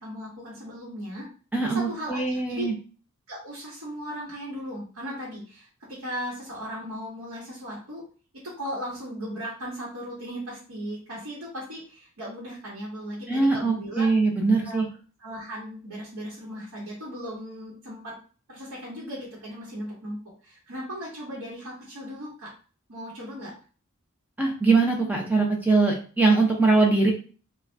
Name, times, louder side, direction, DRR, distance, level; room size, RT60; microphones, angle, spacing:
voice 1, 0.0-1.2 1.6-2.7 3.3-8.0 8.3-14.1 14.6-14.8 15.2-18.1 18.5-22.5 22.9-23.5, equal, 90° right, -7 dB, 1.2 m, -37 dB
voice 2, 1.5-2.7 13.3-14.9 24.4-27.1, right 3 dB, 10° right, 0 dB, 0.6 m, -22 dB
2.7 x 2.4 x 3.3 m, 0.39 s
head